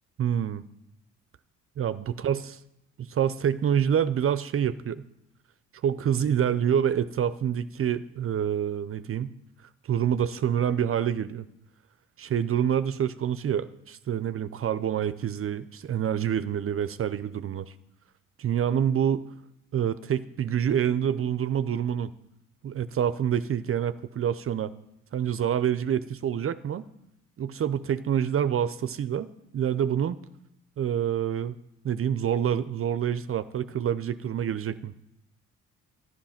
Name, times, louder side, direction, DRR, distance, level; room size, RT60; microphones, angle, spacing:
voice 1, 0.2-0.6 1.8-2.5 3.0-5.0 5.8-9.3 9.9-11.4 12.2-17.7 18.4-19.2 19.7-22.1 22.6-24.7 25.1-26.9 27.4-30.2 30.8-31.6 31.8-34.9, right 9 dB, 45° right, 14 dB, 0.6 m, -27 dB
12.0 x 11.0 x 5.8 m, 0.82 s
cardioid pair, 90°, 30 cm